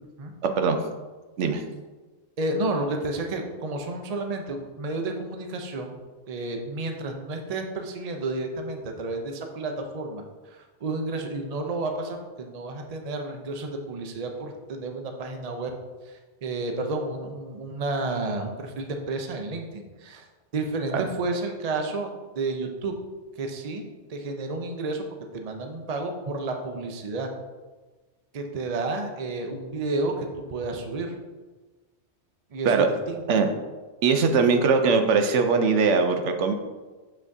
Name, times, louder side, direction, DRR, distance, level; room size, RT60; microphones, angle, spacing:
voice 1, 0.4-0.8 1.4-1.6 20.9-21.1 32.6-32.9 33.3-33.5 34.0-36.5, right 5 dB, 90° right, 6 dB, 1.0 m, -21 dB
voice 2, 2.4-5.9 6.3-15.7 16.1-20.3 20.5-22.1 22.4-22.9 23.4-25.1 25.3-27.3 28.3-31.1 32.5-33.2, right 2 dB, 40° right, 4 dB, 0.7 m, -31 dB
6.5 x 5.9 x 2.7 m, 1.3 s
omnidirectional pair, 1.2 m